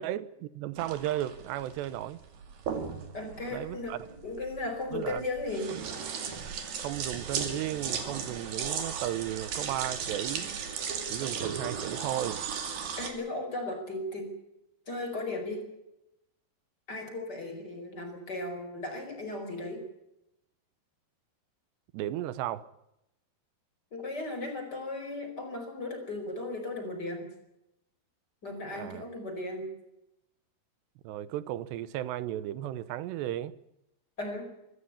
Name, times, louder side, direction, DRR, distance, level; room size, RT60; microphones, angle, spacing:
voice 1, 0.0-2.2 3.5-4.0 4.9-5.2 6.8-10.6 11.1-12.4 21.9-22.6 28.7-29.0 31.0-33.5, right 13 dB, 85° right, 3.1 m, -34 dB
sound 1, 0.8-13.1, right 6 dB, 60° right, 4.1 m, -36 dB
voice 2, 3.1-5.8 13.0-14.3 14.9-15.7 16.9-19.9 23.9-27.3 28.4-29.7 34.2-34.5, left 2 dB, 25° left, 5.1 m, -36 dB
24.5 x 14.0 x 8.6 m
omnidirectional pair, 4.8 m